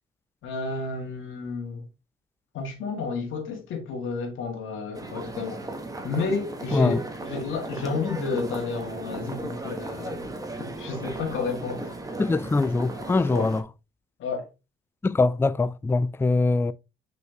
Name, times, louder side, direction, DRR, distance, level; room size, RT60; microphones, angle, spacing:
voice 1, 0.4-1.8 2.5-5.7 6.0-6.9 7.2-10.3 10.6-12.0 13.3-13.5 14.2-14.5, left 4 dB, 80° left, 2.4 m, -31 dB
sound 1, 4.9-13.6, right 2 dB, 15° right, 1.6 m, -36 dB
voice 2, 12.2-13.7 15.0-16.7, left 3 dB, 10° left, 0.4 m, -23 dB
6.2 x 5.6 x 3.0 m
cardioid pair, 90°, 20 cm